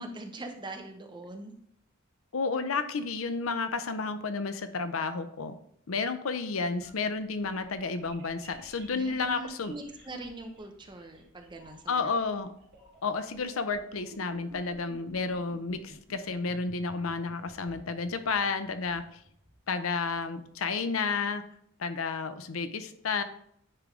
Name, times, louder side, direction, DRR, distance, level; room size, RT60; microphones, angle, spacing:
voice 1, 0.0-1.5 8.9-12.1, right 2 dB, 20° right, 4 dB, 0.7 m, -42 dB
voice 2, 2.3-5.5 5.9-9.7 11.9-12.5 13.0-19.0 19.7-21.4 21.8-23.2, left 4 dB, 75° left, 10 dB, 0.6 m, -31 dB
sound 1, 6.8-20.7, right 1 dB, 60° right, 2.8 m, -54 dB
9.6 x 3.4 x 3.6 m, 0.68 s
head